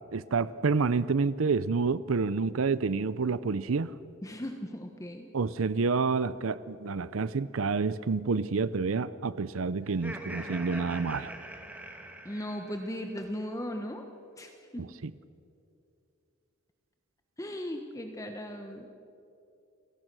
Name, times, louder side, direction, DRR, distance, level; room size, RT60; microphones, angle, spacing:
voice 1, 0.1-3.9 5.3-11.3 14.8-15.1, right 4 dB, 75° right, 16 dB, 0.6 m, -28 dB
voice 2, 4.2-5.3 12.2-14.0 14.4-14.9 17.4-18.9, equal, 15° left, 4 dB, 1.1 m, -37 dB
Laughter, 9.9-13.1, right 1 dB, 5° right, 1.6 m, -43 dB
29.5 x 17.5 x 6.2 m, 2.6 s
head